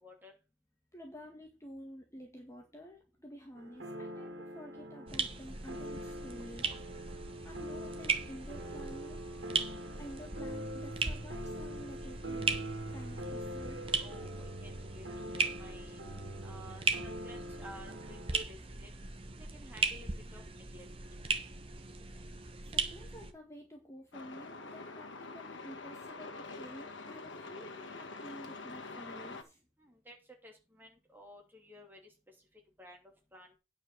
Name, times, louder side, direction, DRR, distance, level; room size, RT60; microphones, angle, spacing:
voice 1, 0.0-0.3 13.9-15.1 15.3-16.0 16.4-18.9 19.5-20.9 29.8-30.2 30.4-32.0 32.8-33.0 33.3-33.5, equal, 10° right, 2 dB, 2.6 m, -53 dB
voice 2, 0.9-6.7 7.4-9.2 10.0-12.5 12.9-13.8 22.7-29.6, equal, 15° left, 1 dB, 1.7 m, -50 dB
sound 1, 3.6-18.4, right 1 dB, 75° right, 2.2 m, -43 dB
sound 2, 5.1-23.3, right 4 dB, 30° right, 1.0 m, -38 dB
Truck, 24.1-29.4, left 3 dB, 85° left, 1.6 m, -46 dB
9.6 x 5.0 x 6.6 m, 0.29 s
head